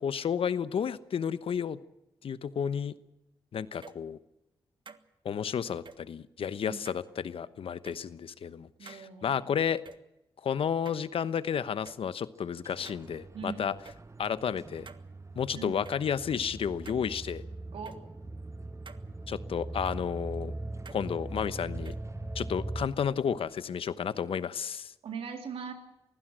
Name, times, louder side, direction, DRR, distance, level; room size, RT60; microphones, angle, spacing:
voice 1, 0.0-1.8 2.2-3.0 3.5-4.2 5.2-9.8 10.4-13.7 14.2-14.9 15.4-17.4 19.3-20.5 20.9-21.9 22.3-24.9, left 7 dB, 70° left, 15 dB, 1.0 m, -32 dB
sound 1, 3.7-4.0 4.9-5.0 5.9-6.0 6.9-7.1 7.9-8.0 8.9-9.0 9.9-10.0 10.9-11.4 11.9-12.0 12.9-13.1 13.9-14.0 14.9-15.0 15.9-16.0 16.9-17.1 17.9-18.0 18.9-19.0 19.9-20.0 20.9-21.1 21.9-22.0, right 5 dB, 55° right, 1.5 m, -49 dB
voice 2, 8.8-9.4 13.3-13.6 15.5-15.8 17.7-18.0 25.0-25.7, right 5 dB, 80° right, 5 dB, 3.3 m, -40 dB
sound 2, 12.4-24.0, right 3 dB, 30° right, 1.0 m, -50 dB
sound 3, 15.3-22.9, right 2 dB, 10° right, 2.3 m, -40 dB
24.0 x 16.0 x 7.8 m, 0.90 s
supercardioid pair, 45°, 10 cm